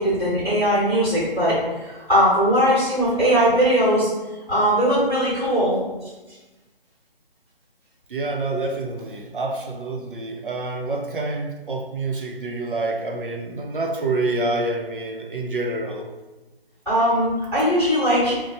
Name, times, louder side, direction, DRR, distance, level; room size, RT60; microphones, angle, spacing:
voice 1, 0.0-4.1 4.5-5.8 16.8-18.3, equal, 5° right, -13 dB, 1.3 m, -19 dB
voice 2, 8.1-16.1, right 2 dB, 60° right, 1 dB, 0.7 m, -27 dB
3.0 x 2.2 x 4.1 m, 1.1 s
figure-of-eight pair, 170°, 30 cm